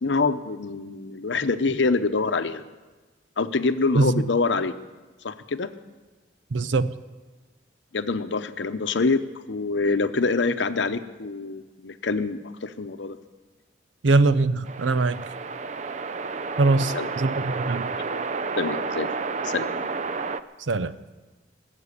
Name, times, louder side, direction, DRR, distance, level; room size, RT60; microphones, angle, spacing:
voice 1, 0.0-2.6 3.4-4.8 5.2-5.7 7.9-9.2 9.5-13.2 16.9-17.1 18.6-19.1 19.4-19.9, left 3 dB, 80° left, 0.8 m, -25 dB
voice 2, 6.5-6.9 14.0-15.2 16.6-17.9 20.7-20.9, right 3 dB, 85° right, 0.6 m, -22 dB
sound 1, 14.6-20.4, right 4 dB, 40° right, 0.5 m, -30 dB
19.0 x 7.5 x 8.3 m
head